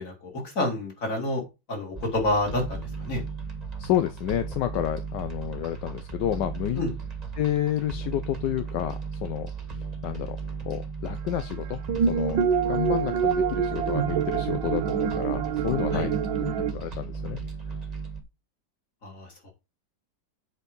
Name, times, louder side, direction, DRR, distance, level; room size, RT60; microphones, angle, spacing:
voice 1, 0.0-1.4 1.7-3.2 6.8-6.9 15.9-16.1 19.0-19.5, left 1 dB, 45° left, 3.0 m, -29 dB
sound 1, 2.0-18.2, right 5 dB, 20° right, 1.7 m, -36 dB
voice 2, 3.8-6.8 7.4-9.5 10.0-10.4 10.7-17.4, left 12 dB, 75° left, 1.2 m, -30 dB
sound 2, 11.9-16.7, right 7 dB, 80° right, 1.6 m, -26 dB
8.2 x 4.5 x 5.3 m
omnidirectional pair, 2.1 m